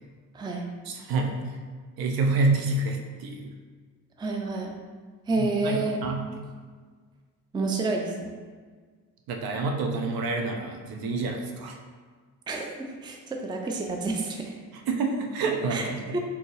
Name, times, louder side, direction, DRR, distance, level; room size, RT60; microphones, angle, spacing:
voice 1, 0.3-0.7 4.2-4.7 5.3-6.0 7.5-8.3 12.5-14.5 15.7-15.8 16.1-16.2, right 3 dB, 10° right, 2 dB, 0.5 m, -29 dB
voice 2, 0.8-1.4 2.0-3.5 5.3-6.2 9.3-11.8 14.9-16.2, right 3 dB, 55° right, 2 dB, 0.7 m, -28 dB
4.1 x 2.8 x 3.2 m, 1.5 s
hypercardioid pair, 50°, 45 cm